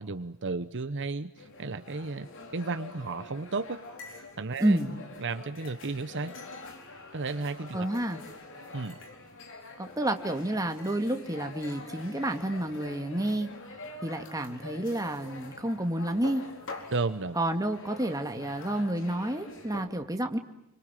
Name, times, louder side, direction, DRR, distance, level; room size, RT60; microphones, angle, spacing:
voice 1, 0.0-3.8 4.4-4.8 5.2-6.3 7.1-7.9 8.7-9.0 16.9-17.4, right 3 dB, 55° right, 11 dB, 0.9 m, -33 dB
sound 1, 1.4-19.9, left 3 dB, 60° left, 4.3 m, -45 dB
voice 2, 4.6-5.0 7.7-8.2 9.8-13.5 14.0-16.5 17.4-20.4, right 1 dB, 15° right, 5 dB, 2.1 m, -30 dB
29.0 x 25.0 x 7.5 m, 0.83 s
head